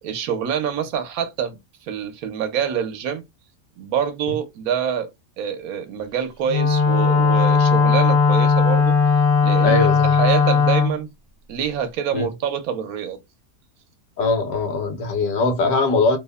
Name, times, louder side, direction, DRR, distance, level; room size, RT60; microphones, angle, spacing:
voice 1, 0.0-1.6 1.9-3.2 3.8-5.1 5.4-8.9 9.4-11.1 11.5-13.2, right 8 dB, 85° right, 1.1 m, -26 dB
Wind instrument woodwind instrument, 6.5-11.0, left 5 dB, 55° left, 0.7 m, -17 dB
voice 2, 9.6-10.2 12.1-12.3 14.2-16.2, left 3 dB, 75° left, 1.2 m, -21 dB
2.9 x 2.0 x 2.2 m
omnidirectional pair, 1.5 m